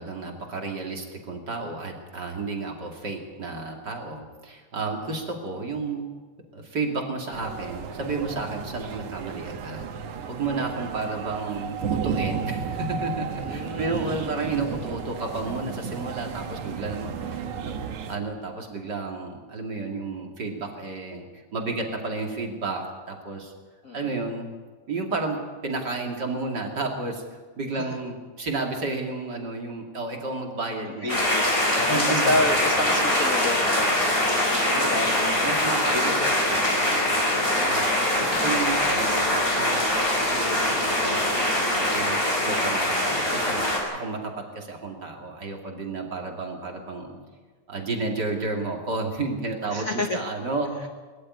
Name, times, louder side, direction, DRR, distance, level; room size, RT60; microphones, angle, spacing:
voice 1, 0.0-6.0 6.5-9.9 10.3-17.7 18.1-23.5 23.9-24.5 24.9-27.2 27.6-31.3 31.8-32.3 34.7-37.1 37.7-47.1 47.7-50.9, right 3 dB, 35° right, 2 dB, 2.9 m, -32 dB
sound 1, 7.3-18.2, right 6 dB, 75° right, 2.7 m, -33 dB
voice 2, 13.4-14.3 14.6-14.8 23.8-24.1 27.8-27.9 31.0-35.4 35.9-36.2 37.4-38.4 49.7-50.2, left 2 dB, 50° left, 4 dB, 1.0 m, -30 dB
sound 2, 31.1-43.8, left 1 dB, 25° left, 5.5 m, -23 dB
21.5 x 14.0 x 9.7 m, 1.4 s
omnidirectional pair, 3.4 m